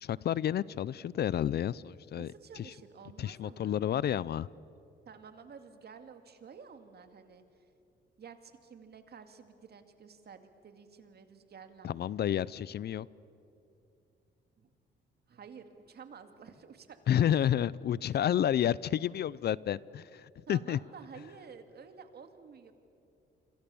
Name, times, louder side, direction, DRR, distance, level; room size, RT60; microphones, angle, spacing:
voice 1, 0.0-2.7 3.2-4.5 11.8-13.1 17.1-20.8, left 10 dB, 55° left, 21 dB, 0.5 m, -30 dB
voice 2, 2.1-3.8 5.1-7.7 8.2-11.9 14.6-14.7 15.3-17.4 18.0-18.2 20.5-22.7, right 6 dB, 55° right, 7 dB, 2.3 m, -51 dB
26.5 x 26.0 x 7.1 m, 2.7 s
cardioid pair, 90°, 20 cm